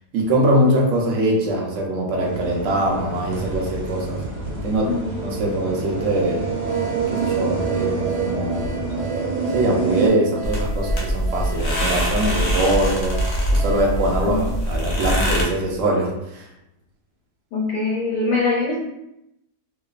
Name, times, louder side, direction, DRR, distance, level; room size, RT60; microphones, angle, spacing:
voice 1, 0.1-4.2 4.6-6.4 7.1-8.8 9.5-13.2 13.5-16.4, right 1 dB, 60° right, -1 dB, 0.8 m, -22 dB
sound 1, 2.2-10.1, right 4 dB, 85° right, 1.2 m, -26 dB
sound 2, 6.7-15.1, right 3 dB, 45° right, 1.1 m, -38 dB
sound 3, 10.4-15.4, equal, 90° left, 0.4 m, -23 dB
voice 2, 17.5-18.8, left 3 dB, 70° left, -6 dB, 1.1 m, -22 dB
3.0 x 2.1 x 2.3 m, 0.84 s
omnidirectional pair, 1.7 m